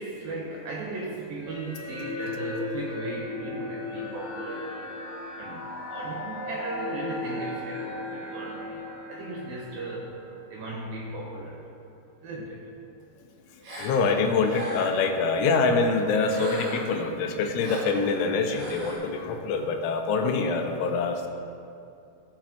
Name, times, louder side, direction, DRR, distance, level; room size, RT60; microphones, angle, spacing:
voice 1, 0.0-4.9 5.4-10.2 10.5-11.7 12.2-12.7, right 2 dB, 75° right, -3 dB, 2.1 m, -37 dB
sound 1, 1.4-10.9, left 2 dB, 65° left, 3.1 m, -36 dB
Gasp, 13.6-13.9 14.4-15.0 16.2-17.0 17.6-17.9 18.5-18.9, right 2 dB, 50° right, 3.9 m, -35 dB
voice 2, 13.8-21.3, left 4 dB, 90° left, 4 dB, 3.2 m, -25 dB
17.0 x 7.2 x 3.0 m, 2.5 s
omnidirectional pair, 5.3 m